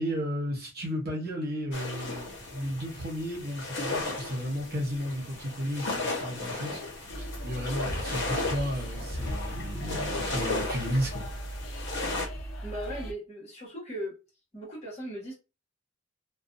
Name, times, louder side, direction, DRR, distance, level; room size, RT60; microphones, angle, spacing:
voice 1, 0.0-6.8 7.4-11.3, equal, 50° right, 1.0 m, -33 dB
sound 1, 1.7-12.3, left 2 dB, 60° left, 1.0 m, -35 dB
sound 2, 7.1-13.1, right 1 dB, 85° left, 0.6 m, -37 dB
voice 2, 12.6-14.1 14.5-15.3, equal, 35° left, 1.3 m, -38 dB
2.5 x 2.3 x 2.5 m
head